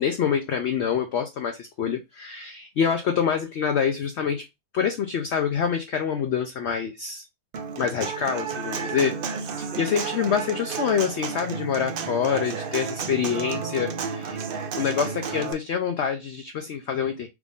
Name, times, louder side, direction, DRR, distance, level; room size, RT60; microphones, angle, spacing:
voice 1, 0.0-4.4 4.7-7.3 7.8-14.4 14.7-17.3, left 7 dB, 65° left, 0.7 m, -26 dB
Human voice / Acoustic guitar, 7.5-15.5, right 6 dB, 75° right, 0.4 m, -32 dB
4.7 x 2.5 x 3.4 m
omnidirectional pair, 1.6 m